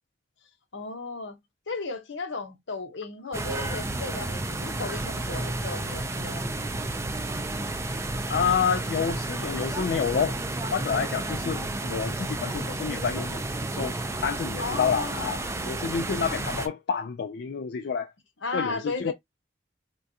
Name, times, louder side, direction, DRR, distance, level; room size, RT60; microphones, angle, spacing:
voice 1, 0.7-1.4 1.7-6.4 11.5-11.8 14.6-15.7 18.4-19.1, left 3 dB, 80° left, 0.9 m, -35 dB
sound 1, 3.3-16.7, right 2 dB, 15° right, 0.3 m, -31 dB
voice 2, 8.3-10.4 10.7-13.4 13.7-13.9 14.2-15.4 15.7-18.1 18.5-19.1, left 6 dB, 60° left, 0.3 m, -28 dB
3.5 x 2.3 x 2.7 m
head